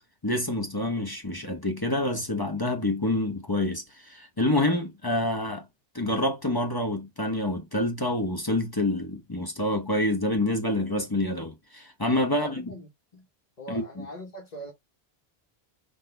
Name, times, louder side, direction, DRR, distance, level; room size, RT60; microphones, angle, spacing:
voice 1, 0.2-5.7 5.9-12.6 13.7-13.8, left 1 dB, 25° left, 0.8 m, -27 dB
voice 2, 12.3-13.3 13.6-14.7, right 1 dB, 45° left, 1.2 m, -41 dB
5.8 x 2.7 x 3.3 m
omnidirectional pair, 1.1 m